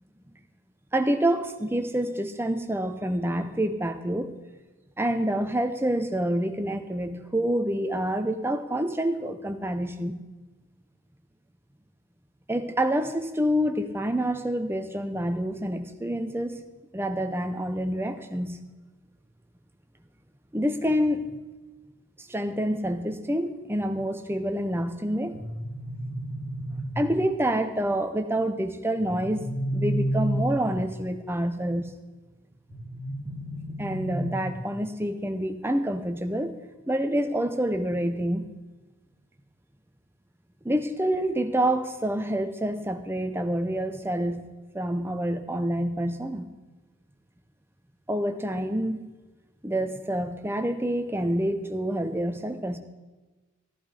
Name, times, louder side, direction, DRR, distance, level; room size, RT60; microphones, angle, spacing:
voice 1, 0.9-4.3 5.0-10.2 12.5-16.6 16.9-18.6 20.5-21.4 22.2-25.4 27.0-29.5 29.7-32.0 33.8-36.6 36.9-38.5 40.6-44.5 44.7-46.5 48.1-49.0 49.6-52.8, right 1 dB, 10° right, 7 dB, 0.8 m, -27 dB
sound 1, 25.3-27.3 29.0-31.0 32.7-34.7, right 1 dB, 20° left, 2.8 m, -31 dB
14.0 x 11.0 x 4.9 m, 1.2 s
head